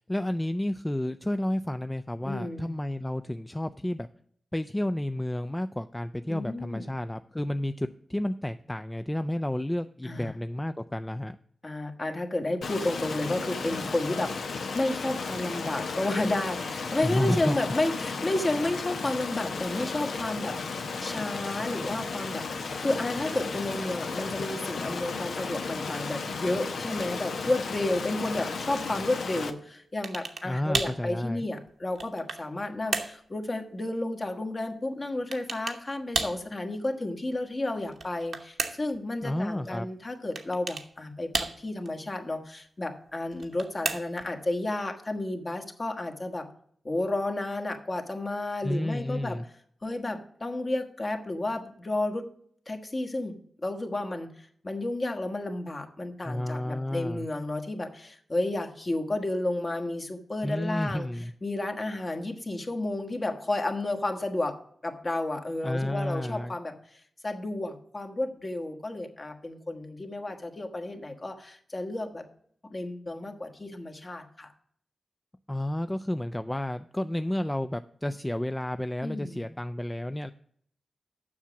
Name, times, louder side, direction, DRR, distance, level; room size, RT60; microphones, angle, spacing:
voice 1, 0.0-4.1 4.5-11.4 17.0-17.6 30.4-31.5 39.2-39.9 48.6-49.4 56.2-57.3 60.4-61.3 65.6-66.6 75.5-80.3, left 1 dB, 15° left, 9 dB, 0.4 m, -31 dB
voice 2, 2.2-2.7 6.3-6.9 10.0-10.3 11.6-20.6 21.0-46.5 46.8-49.4 49.8-52.3 52.7-53.4 53.6-61.1 61.4-66.8 67.2-72.2 72.7-74.5 79.0-79.5, left 2 dB, 40° left, 4 dB, 1.5 m, -32 dB
Stream, 12.6-29.5, left 4 dB, 80° left, 0.8 m, -34 dB
sound 1, 30.0-30.5 30.7-31.0 31.7-32.5 32.9-33.2 35.3-35.8 36.1-36.4 37.8-39.0 40.3-40.9 41.3-41.9 43.3-44.3, right 4 dB, 70° right, 0.9 m, -32 dB
7.3 x 5.8 x 7.1 m, 0.63 s
cardioid pair, 45°, 0 cm